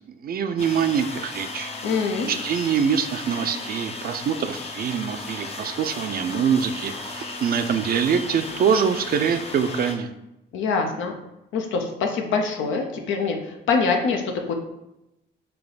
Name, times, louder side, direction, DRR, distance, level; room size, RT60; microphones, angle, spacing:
voice 1, 0.1-1.7 2.3-10.1, right 7 dB, 50° right, 9 dB, 0.4 m, -24 dB
sound 1, 0.6-9.9, left 3 dB, 30° left, 0.6 m, -35 dB
voice 2, 1.8-2.3 10.5-11.1 11.5-14.5, left 4 dB, 80° left, 3 dB, 0.7 m, -24 dB
3.4 x 2.8 x 4.0 m, 0.88 s
cardioid pair, 90°, 20 cm